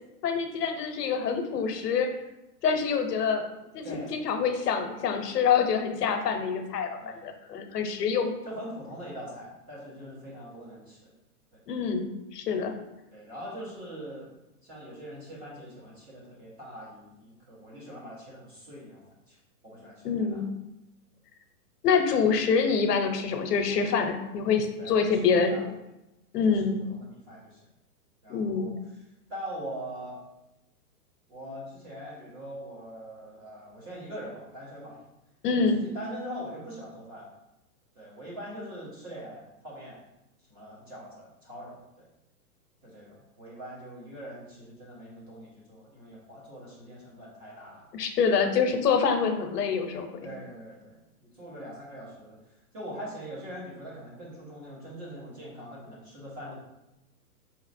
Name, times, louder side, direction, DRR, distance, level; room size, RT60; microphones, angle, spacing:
voice 1, 0.2-2.1 2.6-3.5 3.7-6.9 7.2-8.3 11.7-12.7 20.0-20.5 21.8-25.5 26.3-26.8 28.3-28.7 35.4-35.8 47.9-50.1, left 6 dB, 85° left, 5 dB, 0.8 m, -26 dB
voice 2, 8.4-11.1 11.5-11.6 13.1-14.3 14.6-19.4 19.6-20.4 24.8-25.6 26.4-26.6 26.9-27.6 28.2-29.0 29.3-30.2 31.3-35.0 35.6-37.3 37.9-40.0 40.5-42.0 42.8-47.9 50.2-52.4 52.7-56.6, equal, 20° right, -6 dB, 1.1 m, -42 dB
5.0 x 2.9 x 2.6 m, 0.93 s
hypercardioid pair, 165°, 47 cm